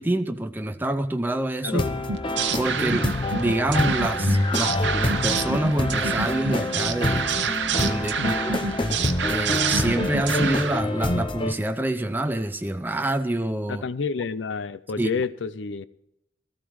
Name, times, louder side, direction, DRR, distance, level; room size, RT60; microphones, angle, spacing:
voice 1, 0.0-1.8 2.5-7.3 7.6-8.6 9.3-13.8 15.0-15.1, right 1 dB, 10° right, 0.5 m, -27 dB
sound 1, 1.7-11.5, left 2 dB, 25° left, 0.7 m, -27 dB
sound 2, 2.1-10.8, right 5 dB, 75° right, 0.9 m, -27 dB
voice 2, 13.7-15.9, left 5 dB, 85° left, 0.5 m, -29 dB
18.0 x 13.5 x 3.1 m
head